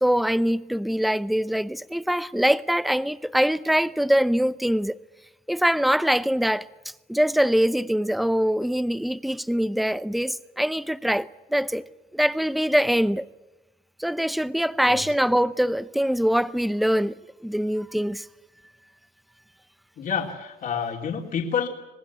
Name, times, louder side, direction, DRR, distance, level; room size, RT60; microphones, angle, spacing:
voice 1, 0.0-5.0 5.5-6.7 7.1-11.8 12.1-13.2 14.0-17.1 17.4-18.2, equal, ahead, 0.7 m, -23 dB
voice 2, 20.0-21.7, left 7 dB, 55° left, 3.3 m, -28 dB
25.5 x 19.5 x 8.5 m
cardioid pair, 110°, 17 cm